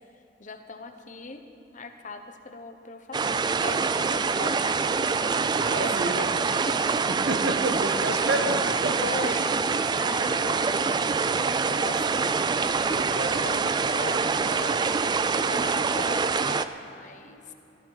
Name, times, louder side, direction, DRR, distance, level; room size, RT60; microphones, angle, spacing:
voice 1, 0.4-5.0 5.2-6.3 6.7-6.8 8.1-8.4 9.0-17.5, left 3 dB, 45° left, 6 dB, 0.9 m, -40 dB
sound 1, 3.1-16.6, right 5 dB, 25° right, 0.3 m, -25 dB
voice 2, 5.6-6.3 7.1-9.1 12.5-13.4, right 2 dB, 65° right, 5 dB, 1.0 m, -30 dB
17.5 x 13.0 x 4.0 m, 2.8 s
head